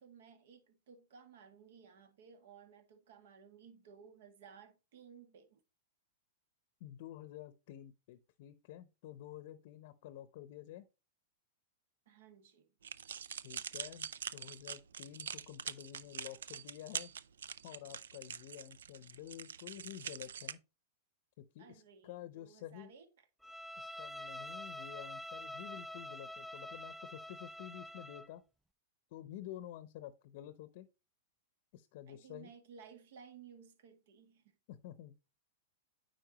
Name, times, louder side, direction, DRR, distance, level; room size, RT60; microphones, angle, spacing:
voice 1, 0.0-5.6 12.1-12.7 21.6-23.1 32.1-34.6, right 7 dB, 70° right, 1.9 m, -58 dB
voice 2, 6.8-10.8 13.4-17.1 17.6-20.6 21.4-22.9 23.8-28.4 29.1-30.9 31.7-32.5 34.7-35.2, left 12 dB, 55° left, 0.7 m, -50 dB
sound 1, 12.8-20.5, right 8 dB, 90° right, 0.5 m, -44 dB
Bowed string instrument, 23.4-28.3, left 1 dB, 5° right, 0.3 m, -46 dB
9.2 x 4.5 x 2.9 m
hypercardioid pair, 130°, 0 cm